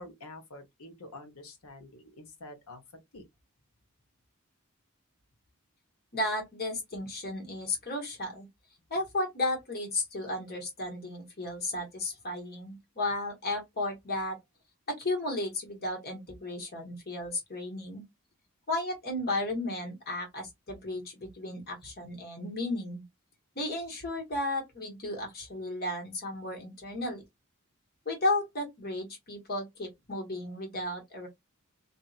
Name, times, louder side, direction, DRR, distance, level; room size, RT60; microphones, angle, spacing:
voice 1, 0.0-2.8 3.1-3.2, left 2 dB, 80° left, 1.1 m, -47 dB
voice 2, 6.1-8.5 8.9-14.4 14.9-18.0 18.7-23.0 23.5-27.2 28.0-31.3, left 2 dB, 45° left, 1.5 m, -34 dB
2.7 x 2.7 x 2.4 m
head